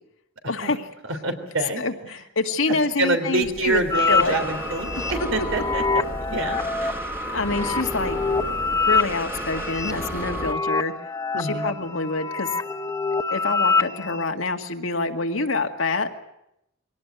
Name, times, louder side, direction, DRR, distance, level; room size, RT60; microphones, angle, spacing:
voice 1, 0.4-0.8 1.8-3.8 4.1-4.4 7.3-8.4 8.9-10.9 11.4-12.5 13.3-16.1, left 3 dB, 85° left, 5 dB, 1.9 m, -26 dB
voice 2, 1.0-2.2 2.7-5.8 6.2-7.0 11.3-11.7, right 2 dB, 85° right, 6 dB, 3.5 m, -27 dB
Breathing, 3.4-10.5, right 1 dB, 10° right, 1.7 m, -33 dB
sound 1, 3.9-14.2, left 4 dB, 15° left, 0.9 m, -26 dB
22.5 x 18.0 x 9.4 m, 0.84 s
head